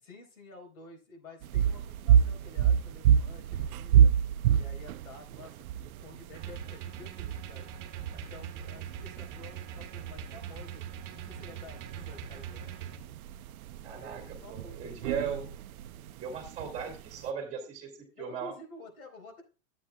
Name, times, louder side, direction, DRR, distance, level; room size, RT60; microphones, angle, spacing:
voice 1, 0.0-4.1 4.6-7.7 8.1-10.8 11.1-12.9 13.9-15.6 18.2-19.4, left 3 dB, 80° left, 2 dB, 4.2 m, -51 dB
sound 1, 1.4-17.3, right 9 dB, 85° right, 0.6 m, -29 dB
sound 2, 6.3-13.0, right 9 dB, 30° right, 1.4 m, -42 dB
voice 2, 13.8-14.2 14.5-15.5 16.2-18.5, right 6 dB, 15° right, 3 dB, 2.2 m, -37 dB
12.5 x 8.4 x 2.3 m, 0.32 s
supercardioid pair, 170°, 42 cm